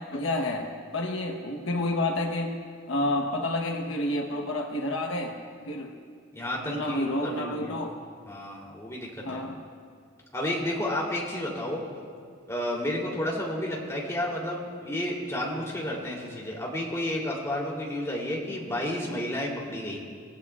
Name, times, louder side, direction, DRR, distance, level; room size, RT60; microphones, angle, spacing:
voice 1, 0.1-2.6 2.9-5.4 5.7-6.0 6.6-8.0 9.2-9.6, left 1 dB, 75° left, 2 dB, 1.2 m, -29 dB
voice 2, 6.3-7.7 8.3-9.4 10.3-11.8 12.5-20.0, left 1 dB, 15° left, -3 dB, 3.2 m, -31 dB
26.0 x 18.0 x 2.5 m, 2.1 s
head